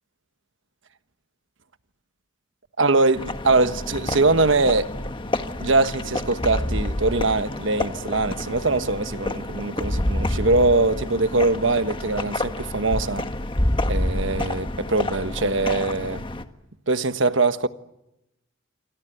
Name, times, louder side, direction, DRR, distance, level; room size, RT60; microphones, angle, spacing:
voice 1, 2.8-4.9 5.6-13.3 13.9-16.2 16.9-17.7, right 3 dB, 65° right, 1.3 m, -22 dB
sound 1, 3.1-16.4, left 1 dB, 25° left, 1.5 m, -28 dB
28.5 x 25.0 x 8.1 m
head